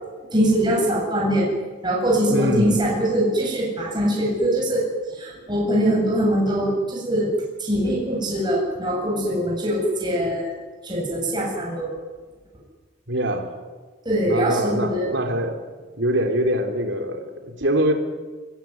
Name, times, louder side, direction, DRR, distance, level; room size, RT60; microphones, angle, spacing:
voice 1, 0.3-1.5 1.8-7.3 7.6-10.5 10.8-11.9 14.0-15.1, right 1 dB, 25° right, -3 dB, 8.0 m, -22 dB
voice 2, 2.3-2.7 13.1-13.5 14.3-15.6 16.0-17.9, right 1 dB, 65° right, 4 dB, 4.0 m, -23 dB
22.5 x 22.0 x 9.6 m, 1.3 s
head